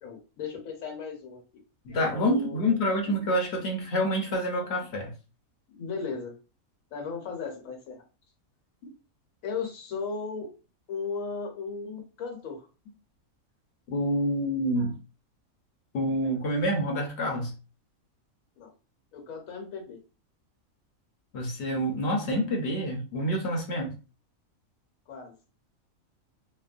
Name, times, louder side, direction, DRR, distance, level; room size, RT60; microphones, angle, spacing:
voice 1, 0.0-1.4 2.1-2.6 5.7-6.3 6.9-7.9 9.4-10.5 10.9-12.7 18.6-18.7 19.1-20.0 25.1-25.3, left 5 dB, 75° left, 2 dB, 1.2 m, -36 dB
voice 2, 1.8-5.1 13.9-14.9 15.9-17.5 21.3-23.9, equal, 60° left, 1 dB, 0.9 m, -27 dB
3.0 x 2.0 x 2.4 m, 0.32 s
omnidirectional pair, 1.5 m